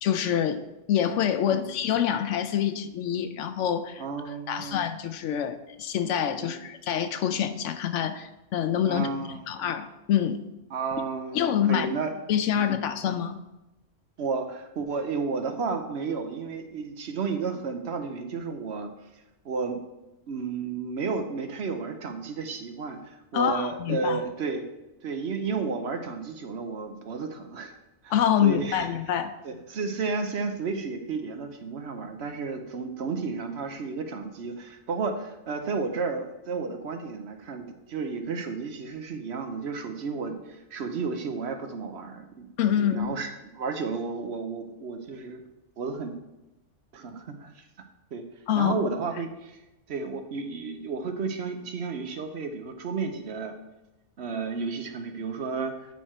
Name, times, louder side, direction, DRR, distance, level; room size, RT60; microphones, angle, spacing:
voice 1, 0.0-4.0 4.5-9.1 9.5-10.4 11.3-11.9 12.3-13.3 23.3-24.2 28.1-29.3 42.6-43.1 48.5-48.7, left 9 dB, 90° left, 10 dB, 1.0 m, -26 dB
voice 2, 4.0-4.8 6.4-6.6 8.8-9.4 10.7-11.4 11.7-12.2 12.5-12.7 14.2-18.9 19.4-19.8 20.3-24.6 25.0-27.7 28.0-28.1 28.4-29.2 29.4-42.5 42.8-45.4 45.8-46.1 46.9-47.6 48.1-48.2 48.6-49.6 49.9-53.5 54.2-55.8, right 4 dB, 65° right, 6 dB, 1.0 m, -32 dB
9.5 x 4.6 x 4.4 m, 0.97 s
omnidirectional pair, 1.2 m